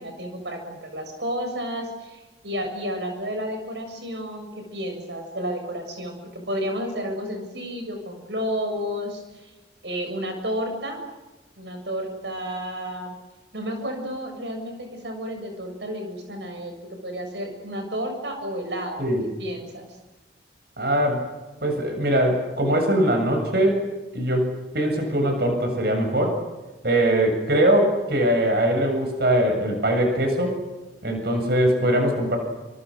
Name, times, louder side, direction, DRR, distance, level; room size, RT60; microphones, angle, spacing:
voice 1, 0.0-9.5 9.8-11.0 11.6-13.2 13.5-19.1 19.4-19.9, equal, 75° right, 4 dB, 7.3 m, -31 dB
voice 2, 20.8-21.2 21.6-23.8 24.1-26.4 26.8-30.6 31.0-32.4, right 1 dB, 60° right, 4 dB, 7.4 m, -21 dB
30.0 x 28.5 x 6.6 m, 1.1 s
head